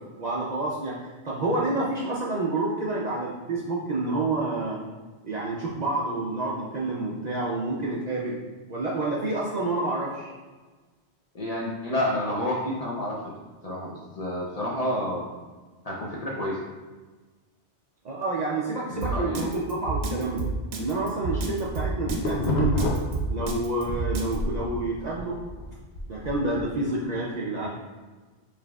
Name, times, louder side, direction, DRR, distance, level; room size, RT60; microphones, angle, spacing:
voice 1, 0.2-1.0 1.2-4.8 5.2-8.4 8.7-10.3 18.0-20.5 20.8-22.9 23.3-25.4 26.1-27.7, right 2 dB, 55° right, -4 dB, 0.5 m, -28 dB
voice 2, 11.3-13.3 13.6-15.3 15.8-16.6 18.9-19.6, left 1 dB, 45° left, -4 dB, 0.5 m, -29 dB
Drum kit, 19.0-24.4, right 4 dB, 75° right, 0.9 m, -29 dB
sound 1, 21.6-24.0 24.3-26.7, left 1 dB, 90° left, 0.9 m, -29 dB
4.9 x 3.3 x 2.3 m, 1.3 s
omnidirectional pair, 1.1 m